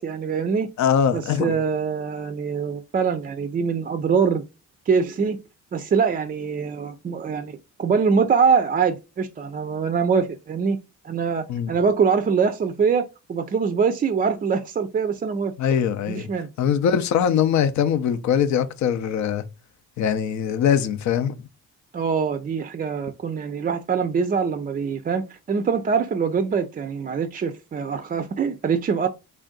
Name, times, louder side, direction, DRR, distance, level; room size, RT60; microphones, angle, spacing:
voice 1, 0.0-0.7 1.1-4.4 4.9-5.4 5.7-10.8 11.0-15.5 16.1-16.5 21.9-29.1, right 6 dB, 30° right, 0.4 m, -23 dB
voice 2, 0.8-1.6 11.5-11.7 15.6-16.3 16.6-19.4 20.0-21.4, left 8 dB, 70° left, 0.6 m, -22 dB
3.4 x 2.5 x 3.7 m
cardioid pair, 90°, 30 cm